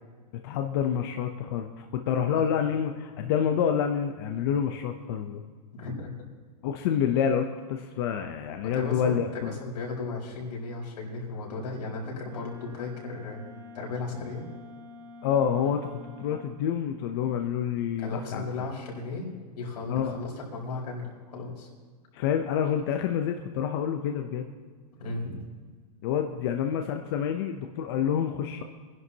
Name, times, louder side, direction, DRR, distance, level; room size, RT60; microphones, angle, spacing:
voice 1, 0.4-5.4 6.6-9.5 15.2-18.5 19.9-20.2 22.1-24.5 26.0-28.6, left 8 dB, 35° left, 5 dB, 0.6 m, -28 dB
voice 2, 5.7-6.2 8.6-13.4 13.7-14.4 18.0-19.3 19.6-21.7 25.0-25.3, left 3 dB, 80° left, -2 dB, 4.6 m, -35 dB
Wind instrument woodwind instrument, 12.2-16.6, left 3 dB, 10° right, 0.8 m, -47 dB
24.0 x 11.0 x 2.8 m, 1.5 s
supercardioid pair, 170°, 21 cm